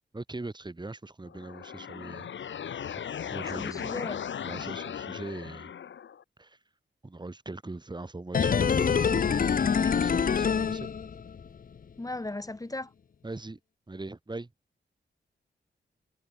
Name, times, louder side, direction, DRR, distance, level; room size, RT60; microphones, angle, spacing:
voice 1, 0.1-2.3 2.9-4.0 4.4-5.7 6.4-6.6 7.0-10.9 13.2-13.6 13.9-14.5, right 2 dB, 25° right, 6.2 m, -41 dB
sound 1, 1.3-6.2, left 8 dB, 80° left, 1.1 m, -37 dB
voice 2, 3.5-4.2 12.0-12.9, left 2 dB, 20° left, 3.1 m, -36 dB
sound 2, 8.3-11.5 11.8-11.9, left 6 dB, 50° left, 0.7 m, -25 dB
wide cardioid pair, 110°, 19 cm